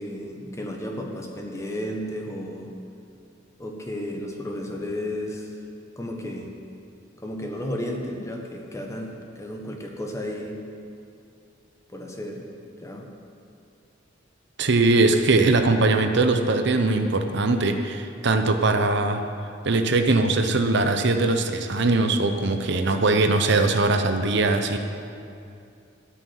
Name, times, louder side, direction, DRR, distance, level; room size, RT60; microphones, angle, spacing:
voice 1, 0.0-2.7 3.6-5.6 6.0-6.5 7.2-10.6 11.9-12.5 12.8-13.1, left 1 dB, 15° left, 1 dB, 1.3 m, -33 dB
voice 2, 14.6-19.2 19.6-24.8, right 3 dB, 60° right, 6 dB, 0.8 m, -21 dB
13.0 x 6.2 x 9.2 m, 2.5 s
head